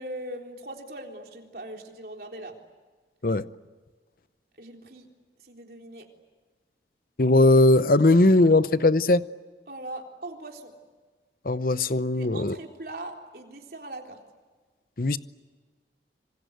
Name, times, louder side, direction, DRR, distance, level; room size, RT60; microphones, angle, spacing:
voice 1, 0.0-2.6 4.6-5.1 5.4-6.1 9.7-10.7 12.2-14.2, right 1 dB, 55° right, 3.9 m, -40 dB
voice 2, 7.2-9.2 11.4-12.6 15.0-15.2, left 2 dB, 50° left, 0.8 m, -19 dB
27.0 x 25.5 x 8.1 m
head